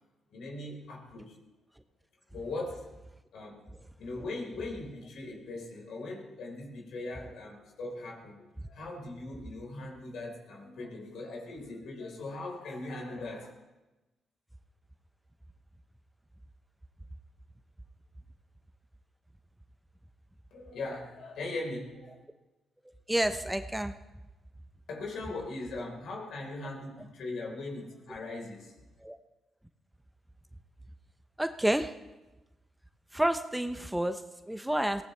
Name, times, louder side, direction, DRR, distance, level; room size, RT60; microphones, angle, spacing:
voice 1, 0.3-1.4 2.3-2.9 3.3-3.6 4.0-13.5 20.5-22.2 24.9-28.7, left 2 dB, 75° left, 0 dB, 4.4 m, -40 dB
voice 2, 23.1-23.9 29.0-29.2 31.4-31.9 33.1-35.0, right 1 dB, 5° right, 8 dB, 0.8 m, -29 dB
22.0 x 17.0 x 3.4 m, 1.1 s
cardioid pair, 90°, 0 cm